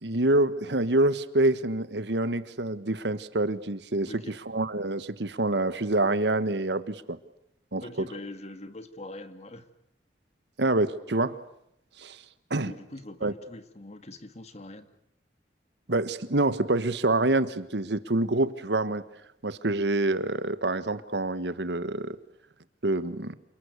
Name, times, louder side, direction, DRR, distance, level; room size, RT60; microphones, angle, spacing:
voice 1, 0.0-4.1 4.5-7.2 7.7-8.0 10.6-11.4 12.0-12.2 12.5-12.7 13.2-13.3 15.9-19.0 19.4-22.2 22.8-23.3, right 2 dB, 70° right, 13 dB, 1.4 m, -26 dB
voice 2, 4.1-4.4 7.8-9.7 12.6-14.9, left 2 dB, 40° left, 10 dB, 1.9 m, -43 dB
28.5 x 21.0 x 8.3 m, 0.77 s
head